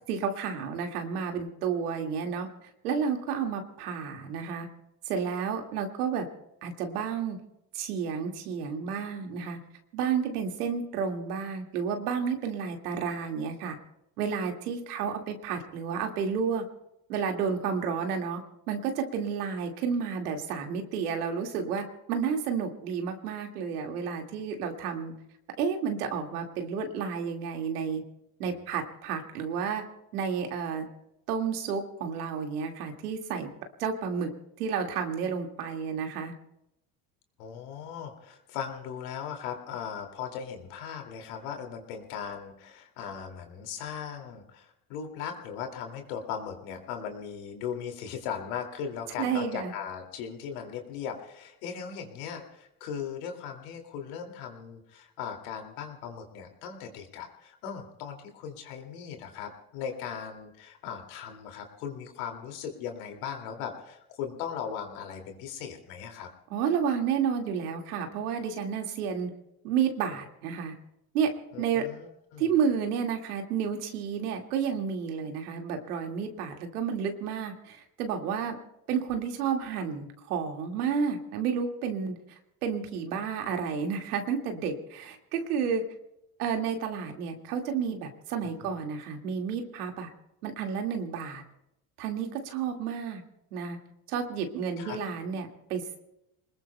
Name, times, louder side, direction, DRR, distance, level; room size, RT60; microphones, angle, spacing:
voice 1, 0.1-2.5 2.8-4.7 5.1-6.3 6.6-7.4 7.7-9.6 9.9-13.8 14.2-16.6 17.1-18.4 18.7-25.1 25.6-28.0 28.4-29.8 30.1-30.8 31.3-33.5 33.8-34.3 34.6-36.3 49.2-49.7 66.5-69.3 69.6-70.7 71.1-71.3 71.6-71.8 72.4-78.5 78.9-85.8 86.4-90.1 90.4-91.4 92.0-93.2 93.5-93.8 94.1-96.0, right 6 dB, 85° right, 3 dB, 2.2 m, -31 dB
voice 2, 37.4-66.3 71.5-72.5 88.4-88.7 94.8-95.0, left 7 dB, 75° left, 4 dB, 2.6 m, -38 dB
27.5 x 20.5 x 2.3 m, 0.84 s
hypercardioid pair, 75°, 44 cm